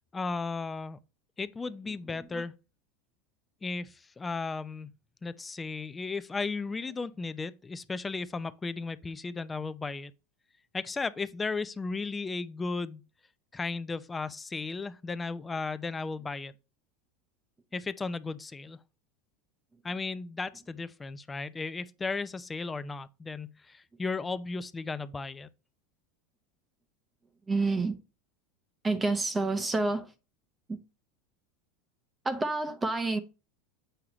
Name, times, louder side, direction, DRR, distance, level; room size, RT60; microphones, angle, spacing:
voice 1, 0.1-1.0 1.4-2.5 3.6-4.9 5.2-10.1 10.7-13.0 13.5-16.5 17.7-18.8 19.8-25.5, left 4 dB, 20° left, 0.5 m, -35 dB
voice 2, 27.5-28.0 28.8-30.1 30.7-30.8 32.2-33.2, right 3 dB, 15° right, 0.7 m, -28 dB
7.8 x 4.7 x 3.0 m
hypercardioid pair, 85°, 0 cm